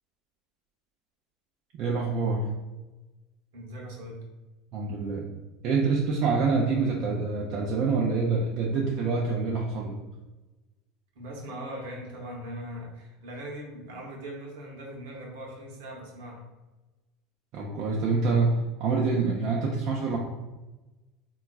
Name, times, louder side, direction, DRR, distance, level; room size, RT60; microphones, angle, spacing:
voice 1, 1.7-2.5 4.7-5.3 5.6-9.9 17.5-20.2, right 4 dB, 55° right, -2 dB, 0.5 m, -26 dB
voice 2, 3.5-4.2 11.1-16.4, equal, 75° right, -1 dB, 0.9 m, -40 dB
3.7 x 2.3 x 2.3 m, 1.1 s
hypercardioid pair, 80°, 0 cm